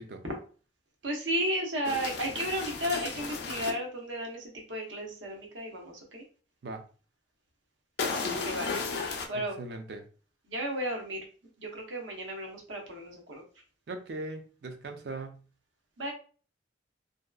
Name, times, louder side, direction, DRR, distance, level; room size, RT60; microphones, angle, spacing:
voice 1, 1.0-6.2 8.4-8.7 9.3-9.6 10.5-11.2 11.6-13.4 16.0-16.1, equal, 90° right, 0.8 m, -33 dB
sound 1, 1.8-3.7 8.0-9.3, left 4 dB, 60° left, 0.4 m, -34 dB
voice 2, 9.3-10.0 13.9-15.4, right 2 dB, 60° right, 0.4 m, -39 dB
2.7 x 2.3 x 2.2 m
head